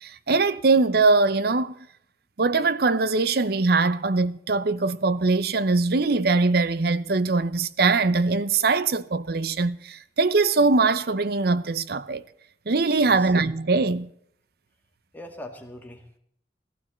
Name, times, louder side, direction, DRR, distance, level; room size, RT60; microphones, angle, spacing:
voice 1, 0.0-1.7 2.4-12.2 12.7-14.1, right 3 dB, 60° right, 0.7 m, -22 dB
voice 2, 13.0-13.3 15.1-16.2, left 1 dB, 10° left, 2.1 m, -41 dB
16.0 x 14.5 x 4.4 m
head